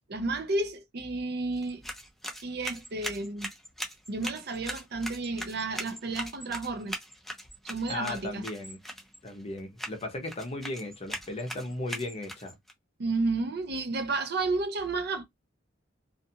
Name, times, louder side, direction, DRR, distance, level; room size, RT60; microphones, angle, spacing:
voice 1, 0.1-1.8 2.4-3.5 4.1-7.0 7.6-8.4 13.0-15.2, right 3 dB, 55° right, 0.6 m, -31 dB
sound 1, 1.5-12.7, equal, ahead, 0.6 m, -41 dB
voice 2, 7.9-8.8 9.2-12.6, left 2 dB, 35° left, 0.7 m, -36 dB
2.5 x 2.4 x 2.7 m
head